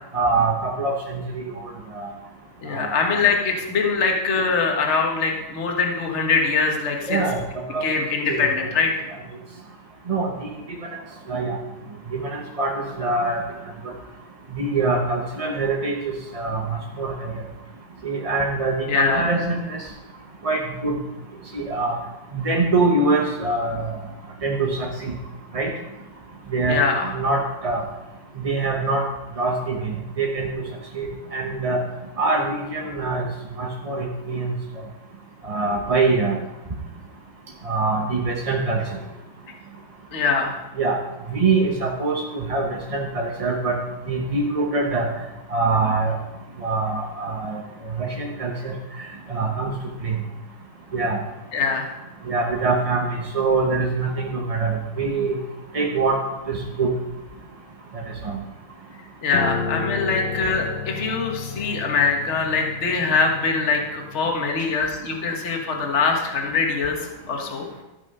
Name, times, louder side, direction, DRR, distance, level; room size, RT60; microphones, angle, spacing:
voice 1, 0.1-1.5 1.9-2.1 2.7-3.2 7.1-7.4 7.7-7.8 8.2-8.4 10.1-10.3 11.3-11.6 12.1-13.4 14.5-17.3 18.0-19.8 20.4-21.0 21.5-22.0 22.3-23.9 24.4-25.1 25.5-25.7 26.5-26.8 27.1-27.8 28.4-29.1 29.4-30.7 30.9-31.8 32.2-33.3 33.6-34.5 35.4-36.4 37.6-39.0 40.8-41.0 41.3-43.8 44.1-45.1 45.5-46.2 46.6-47.6 48.0-49.7 50.0-50.2 50.9-51.2 52.3-55.4 55.7-56.2 56.5-57.0 57.9-58.4, right 3 dB, 30° right, -1 dB, 0.6 m, -24 dB
voice 2, 2.6-7.2 7.8-8.9 18.9-19.2 26.7-27.1 40.1-40.6 51.5-51.9 59.2-67.6, left 4 dB, 40° left, 2 dB, 1.6 m, -23 dB
Piano, 59.3-64.6, left 5 dB, 75° left, 1.9 m, -32 dB
13.0 x 6.1 x 5.4 m, 1.0 s
omnidirectional pair, 2.0 m